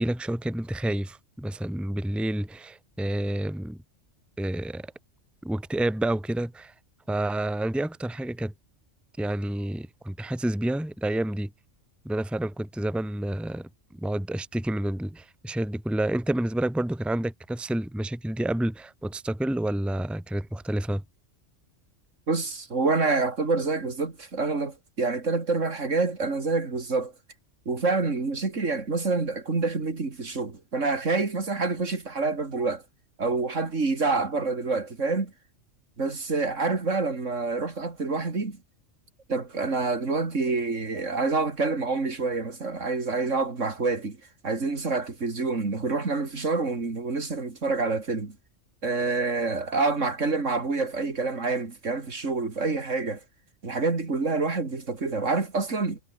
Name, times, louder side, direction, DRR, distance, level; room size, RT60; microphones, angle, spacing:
voice 1, 0.0-3.8 4.4-4.8 5.4-6.7 7.1-8.5 9.2-11.5 12.0-13.7 13.9-21.0, right 1 dB, ahead, 1.2 m, -29 dB
voice 2, 22.3-27.1 27.6-32.8 33.2-35.3 36.0-38.6 39.3-44.2 44.4-48.4 48.8-53.2 53.6-56.0, right 3 dB, 80° right, 3.2 m, -27 dB
omnidirectional pair, 1.3 m